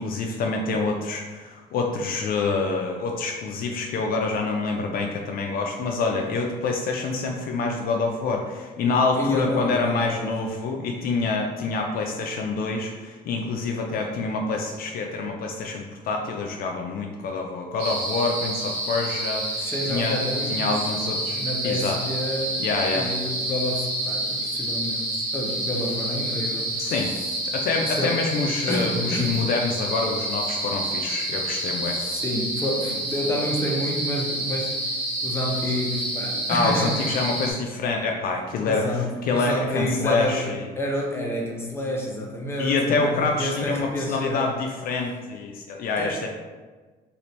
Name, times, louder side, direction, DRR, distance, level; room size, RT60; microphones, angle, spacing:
voice 1, 0.0-20.2 20.5-22.0 22.6-23.1 26.8-27.1 27.4-32.0 36.5-38.9 39.3-40.6 42.6-46.3, left 3 dB, 60° left, 2 dB, 0.4 m, -26 dB
voice 2, 9.2-10.4 19.6-20.9 21.3-22.6 22.9-27.3 27.8-28.2 28.7-29.5 31.9-35.0 35.2-37.1 38.6-44.5 46.0-46.2, left 1 dB, 15° left, -1 dB, 0.6 m, -29 dB
sound 1, 17.8-37.5, right 1 dB, 70° right, 1.1 m, -29 dB
2.8 x 2.5 x 3.1 m, 1.3 s
cardioid pair, 110°, 17 cm